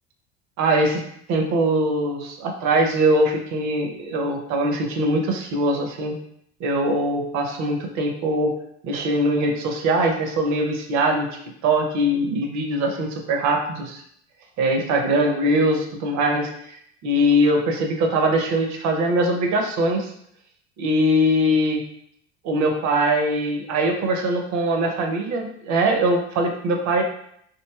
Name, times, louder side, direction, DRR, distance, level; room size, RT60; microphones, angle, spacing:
voice 1, 0.6-1.0 1.3-6.1 6.6-8.5 8.8-11.3 11.6-14.0 14.6-16.8 17.0-20.1 20.8-21.8 22.4-27.0, right 1 dB, 50° right, 3 dB, 0.7 m, -22 dB
3.0 x 2.5 x 2.3 m, 0.70 s
hypercardioid pair, 80°, 35 cm